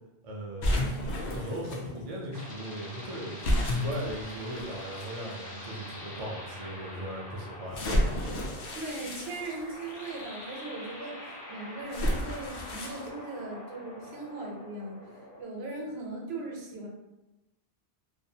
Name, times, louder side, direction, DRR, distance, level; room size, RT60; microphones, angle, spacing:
voice 1, 0.2-7.9, equal, 45° right, -1 dB, 0.4 m, -38 dB
sound 1, 0.6-1.8 3.4-5.1 5.8-5.9 7.7-10.1 11.9-13.1, left 1 dB, 65° left, 0.7 m, -31 dB
sound 2, 1.9-15.4, left 1 dB, 25° left, 0.5 m, -45 dB
voice 2, 8.7-15.1 15.4-16.9, right 2 dB, 75° right, -1 dB, 0.9 m, -39 dB
2.5 x 2.3 x 2.6 m, 0.98 s
omnidirectional pair, 1.1 m